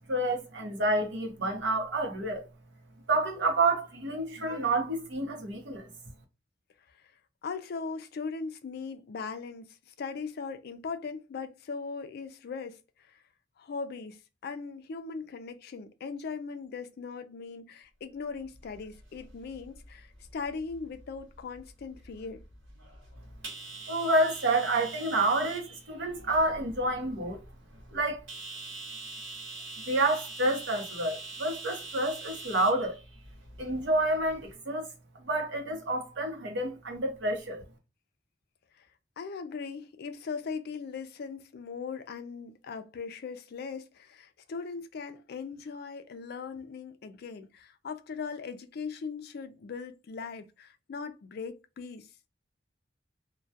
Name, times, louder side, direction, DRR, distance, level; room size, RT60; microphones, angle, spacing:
voice 1, 0.1-2.5 3.1-6.1 23.9-27.4 27.9-28.2 29.9-33.0 33.6-34.9 35.2-37.6, right 2 dB, 70° right, 0.8 m, -29 dB
voice 2, 7.4-12.8 13.1-13.2 13.6-22.4 38.8-38.9 39.2-52.1, left 5 dB, 55° left, 0.4 m, -39 dB
sound 1, 18.4-34.5, right 3 dB, 85° right, 1.1 m, -45 dB
2.2 x 2.2 x 2.6 m
head